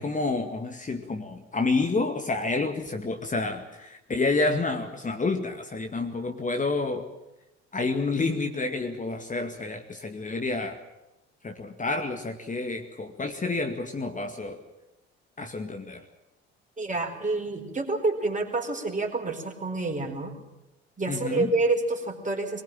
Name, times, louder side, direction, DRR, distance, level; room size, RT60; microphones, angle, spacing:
voice 1, 0.0-7.0 7.7-10.8 11.4-14.6 15.4-16.0 21.1-21.5, left 3 dB, 25° left, 5 dB, 2.1 m, -29 dB
voice 2, 16.8-20.3 21.0-22.6, right 3 dB, 25° right, 3 dB, 4.6 m, -28 dB
22.5 x 19.5 x 9.0 m, 0.98 s
figure-of-eight pair, 50°, 32 cm